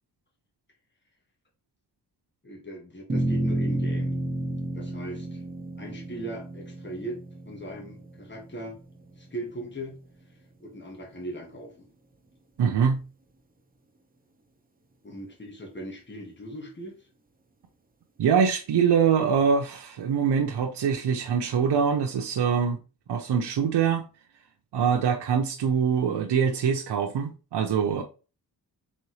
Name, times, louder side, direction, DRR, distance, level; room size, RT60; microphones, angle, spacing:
voice 1, 2.4-4.2 4.7-5.4 5.8-7.2 7.5-8.8 9.2-10.0 10.6-11.9 15.0-17.0, right 1 dB, 25° left, 1.7 m, -39 dB
sound 1, 3.1-9.6, right 1 dB, 20° right, 0.7 m, -31 dB
voice 2, 12.6-13.0 18.2-22.8 23.1-24.0 24.7-28.0, right 7 dB, 75° right, 0.7 m, -24 dB
4.2 x 3.8 x 3.2 m
cardioid pair, 70°, 41 cm